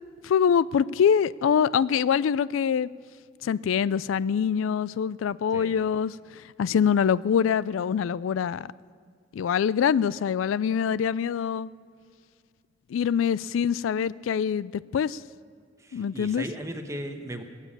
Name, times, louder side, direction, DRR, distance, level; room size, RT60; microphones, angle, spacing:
voice 1, 0.2-2.9 3.4-6.2 6.6-8.7 9.3-11.7 12.9-15.2 15.9-16.4, left 7 dB, 85° left, 20 dB, 0.3 m, -24 dB
voice 2, 15.8-17.4, right 1 dB, 15° right, 6 dB, 1.0 m, -36 dB
20.0 x 7.5 x 8.5 m, 2.1 s
head